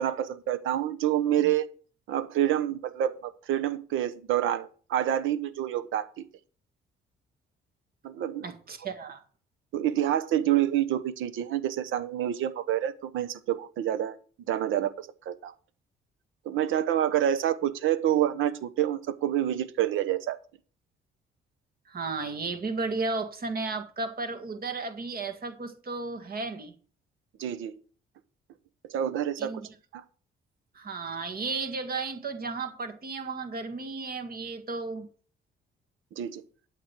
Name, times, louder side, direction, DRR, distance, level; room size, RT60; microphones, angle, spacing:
voice 1, 0.0-1.7 2.1-6.2 8.0-8.4 9.7-14.2 14.5-15.5 16.4-20.4 27.4-27.7 28.9-29.5 29.9-30.0 36.2-36.4, right 11 dB, 85° right, 1.1 m, -27 dB
voice 2, 8.4-9.2 21.9-26.7 29.4-29.7 30.8-35.1, right 3 dB, 50° right, 2.0 m, -34 dB
11.5 x 7.4 x 4.6 m
cardioid pair, 90°, 20 cm